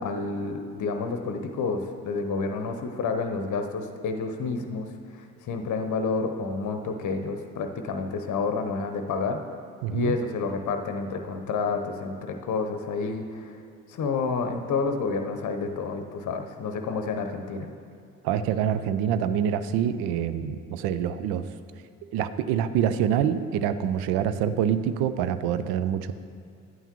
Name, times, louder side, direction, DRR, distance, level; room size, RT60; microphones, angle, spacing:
voice 1, 0.0-9.4 9.9-13.6 13.9-17.7, left 4 dB, 45° left, 6 dB, 0.9 m, -29 dB
voice 2, 9.8-10.1 18.2-21.4 22.1-26.1, right 9 dB, 65° right, 12 dB, 0.5 m, -26 dB
11.0 x 8.9 x 3.0 m, 2.3 s
figure-of-eight pair, 45°, 42 cm